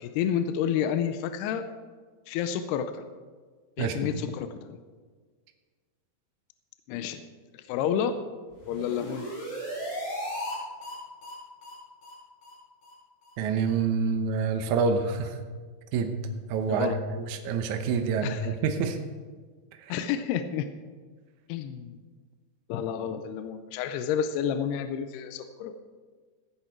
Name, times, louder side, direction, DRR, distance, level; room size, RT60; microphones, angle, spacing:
voice 1, 0.0-1.7 2.3-3.0 3.8-4.8 6.9-7.2 7.5-8.2 8.7-9.3 16.7-17.0 18.2-18.5 19.9-20.7 21.5-22.0 22.7-25.8, left 8 dB, 85° left, 10 dB, 2.7 m, -30 dB
sound 1, 8.5-10.6 10.8-10.9 11.2-11.3 11.6-11.7 12.0-12.1 12.4-12.5 12.8-12.9 13.2-13.3 13.6-13.7, equal, 40° left, 5.3 m, -36 dB
voice 2, 13.4-15.4 15.9-16.2 16.5-19.0 19.8-20.0, right 5 dB, 85° right, 6 dB, 1.6 m, -27 dB
15.0 x 10.5 x 4.5 m, 1.5 s
omnidirectional pair, 4.7 m